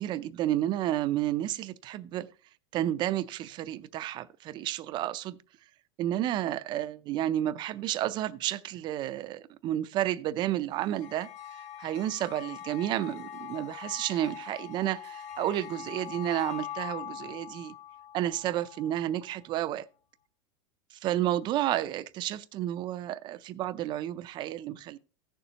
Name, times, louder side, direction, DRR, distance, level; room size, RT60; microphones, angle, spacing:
voice 1, 0.0-2.3 2.7-5.4 6.0-17.7 18.1-19.9 20.9-25.0, right 13 dB, 30° right, 0.4 m, -31 dB
sound 1, 10.7-19.3, left 10 dB, 75° left, 2.7 m, -43 dB
15.5 x 6.8 x 2.8 m
supercardioid pair, 150°, 16 cm